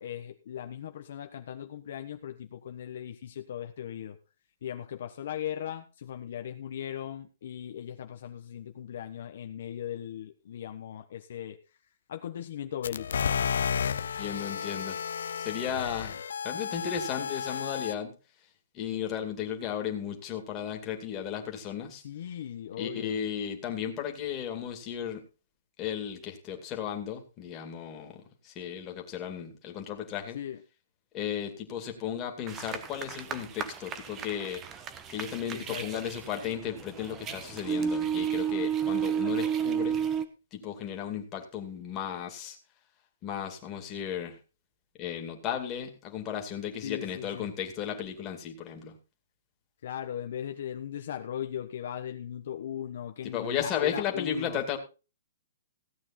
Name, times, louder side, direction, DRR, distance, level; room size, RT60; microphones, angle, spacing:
voice 1, 0.0-4.2 4.6-11.6 12.1-13.2 22.0-23.2 30.3-30.6 35.5-36.1 46.8-47.5 49.8-54.6, left 10 dB, 50° left, 6 dB, 1.2 m, -38 dB
sound 1, 12.8-17.9, left 7 dB, 75° left, 0.7 m, -32 dB
voice 2, 13.9-15.0 15.4-16.2 16.4-18.1 18.7-22.0 22.8-25.2 25.8-30.4 31.1-34.6 35.1-40.0 40.5-42.6 43.2-44.4 45.0-49.0 53.2-54.8, left 9 dB, 20° left, 3 dB, 2.4 m, -35 dB
sound 2, 32.5-40.2, right 8 dB, 15° right, 1.0 m, -32 dB
16.5 x 8.8 x 4.3 m, 0.33 s
hypercardioid pair, 170°, 0 cm